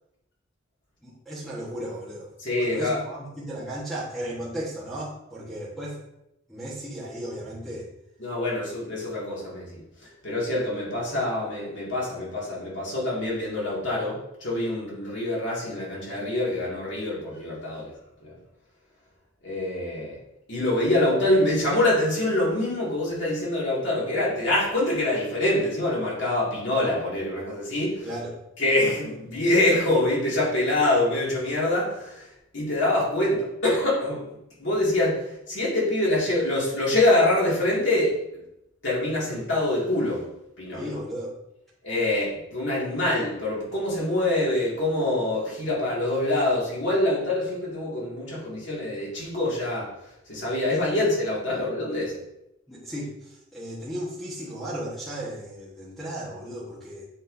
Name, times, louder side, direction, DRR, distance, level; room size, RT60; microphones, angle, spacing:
voice 1, 1.0-2.3 2.6-6.0 6.5-7.9 28.0-28.3 40.7-41.3 50.7-51.0 52.7-57.1, equal, ahead, -8 dB, 1.3 m, -35 dB
voice 2, 2.4-3.0 8.2-9.7 10.2-17.9 18.2-18.3 19.4-20.2 20.5-28.1 28.6-32.3 32.5-34.2 34.6-38.4 38.8-40.2 40.6-40.9 41.8-49.9 50.3-52.2, left 1 dB, 60° left, -5 dB, 2.2 m, -25 dB
8.1 x 5.9 x 2.7 m, 0.84 s
head